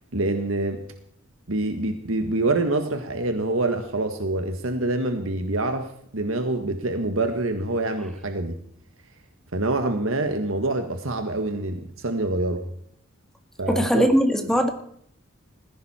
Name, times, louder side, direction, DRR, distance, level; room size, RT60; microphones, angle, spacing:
voice 1, 0.1-0.8 1.5-5.9 6.1-8.5 9.5-12.6 13.6-14.1, right 2 dB, 75° right, 6 dB, 1.7 m, -26 dB
voice 2, 13.7-14.7, equal, ahead, 5 dB, 1.9 m, -20 dB
19.5 x 16.0 x 4.4 m, 0.65 s
head